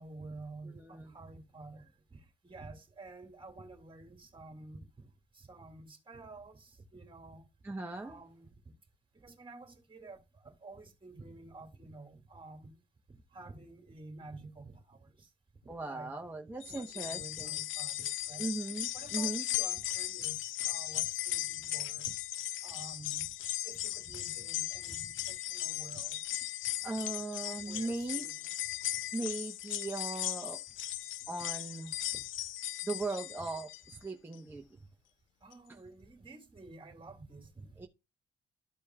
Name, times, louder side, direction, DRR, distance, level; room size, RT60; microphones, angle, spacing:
voice 1, 0.0-5.1 5.3-7.5 8.0-8.7 9.1-12.8 13.1-15.3 15.6-16.2 16.7-18.5 18.9-22.2 22.6-23.3 23.6-26.2 27.6-28.5 32.1-32.2 35.4-37.8, right 3 dB, 25° right, 2.2 m, -50 dB
voice 2, 0.8-1.1 7.6-8.2 15.7-17.6 18.4-19.4 26.8-28.3 29.1-30.6 31.3-32.0 32.8-34.6 37.8-37.9, right 2 dB, 10° right, 1.0 m, -38 dB
sound 1, 16.6-33.9 34.3-34.4 35.5-35.6, left 14 dB, 75° left, 0.5 m, -37 dB
13.5 x 5.2 x 2.4 m
cardioid pair, 90°, 20 cm